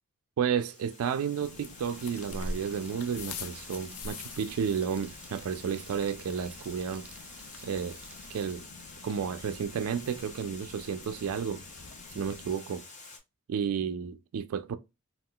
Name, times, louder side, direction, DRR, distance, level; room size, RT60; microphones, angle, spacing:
voice 1, 0.4-7.1 7.6-8.0 8.3-8.6 9.0-11.6 12.1-12.8 13.5-14.8, right 7 dB, 70° right, 0.3 m, -32 dB
Water, 0.6-13.2, left 3 dB, 35° left, 0.9 m, -49 dB
sound 1, 1.4-12.5, left 3 dB, 85° left, 0.5 m, -45 dB
Rain, 1.8-8.5, right 2 dB, 5° right, 0.5 m, -53 dB
3.6 x 2.4 x 2.2 m
head